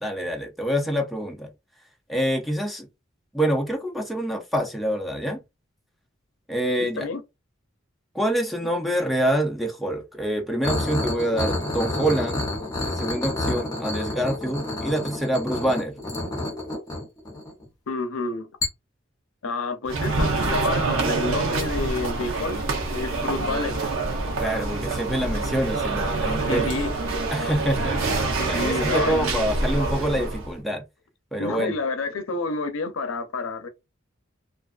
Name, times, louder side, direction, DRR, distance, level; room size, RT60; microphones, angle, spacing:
voice 1, 0.0-1.5 2.1-2.9 3.3-5.4 6.5-7.1 8.1-12.5 12.8-16.0 24.4-26.7 27.3-30.8 31.3-31.7, right 1 dB, ahead, 0.4 m, -26 dB
voice 2, 6.8-7.2 17.9-18.5 19.4-22.6 22.9-23.8 26.5-26.9 28.4-29.3 31.4-33.7, left 3 dB, 80° left, 0.5 m, -29 dB
sound 1, 10.6-17.7 18.6-18.7, left 2 dB, 20° left, 0.8 m, -29 dB
sound 2, 19.9-30.5, right 3 dB, 85° right, 0.7 m, -26 dB
2.4 x 2.3 x 2.3 m
head